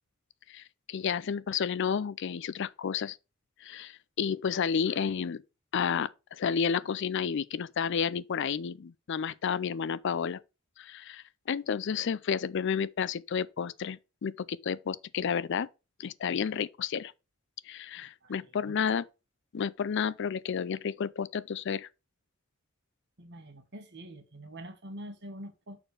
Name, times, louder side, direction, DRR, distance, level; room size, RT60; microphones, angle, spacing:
voice 1, 0.5-3.2 3.6-5.4 5.7-10.4 10.8-15.7 16.0-17.1 17.7-19.1 19.5-21.9, left 7 dB, 60° left, 0.4 m, -31 dB
voice 2, 18.2-18.7 23.2-25.8, right 1 dB, 55° right, 1.6 m, -45 dB
6.7 x 4.4 x 6.3 m
head